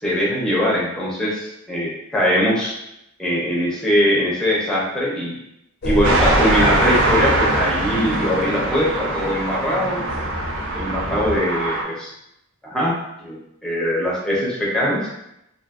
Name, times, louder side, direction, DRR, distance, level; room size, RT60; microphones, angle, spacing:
voice 1, 0.0-2.8 3.2-5.4 5.8-10.0 10.7-12.1 12.6-15.1, equal, 5° left, -5 dB, 0.6 m, -21 dB
sound 1, 5.8-11.4, left 1 dB, 45° left, 0.5 m, -26 dB
sound 2, 6.0-11.8, right 2 dB, 60° right, 0.4 m, -23 dB
2.7 x 2.5 x 2.3 m, 0.82 s
head